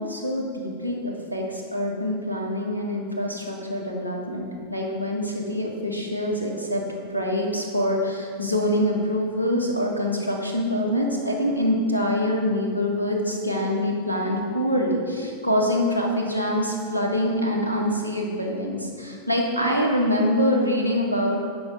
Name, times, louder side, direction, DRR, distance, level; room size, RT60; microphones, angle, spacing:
voice 1, 0.0-6.8 7.1-21.4, equal, 85° left, 0 dB, 1.4 m, -25 dB
9.5 x 5.9 x 5.2 m, 2.1 s
figure-of-eight pair, 90°, 0 cm